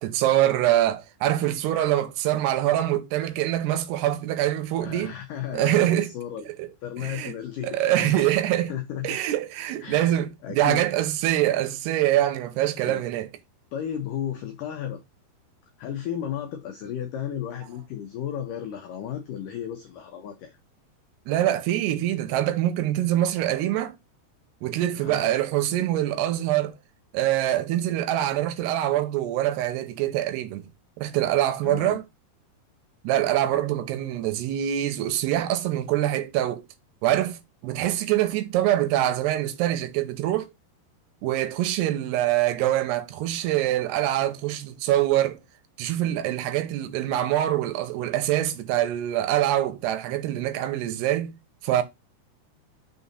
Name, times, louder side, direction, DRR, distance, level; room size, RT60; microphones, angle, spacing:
voice 1, 0.0-5.1 5.5-6.1 6.6-6.7 7.0-7.4 7.6-8.7 9.0-13.3 21.3-24.0 24.6-26.8 27.1-30.7 31.0-32.0 33.0-36.6 37.0-40.5 41.2-45.4 45.8-51.3 51.6-51.8, right 13 dB, 85° right, 2.7 m, -24 dB
voice 2, 4.8-6.5 6.8-8.4 8.7-9.2 9.8-10.8 12.8-13.0 13.7-15.0 15.8-20.6 24.9-25.3 31.6-32.0, left 9 dB, 85° left, 1.8 m, -34 dB
6.1 x 3.9 x 4.0 m
omnidirectional pair, 4.8 m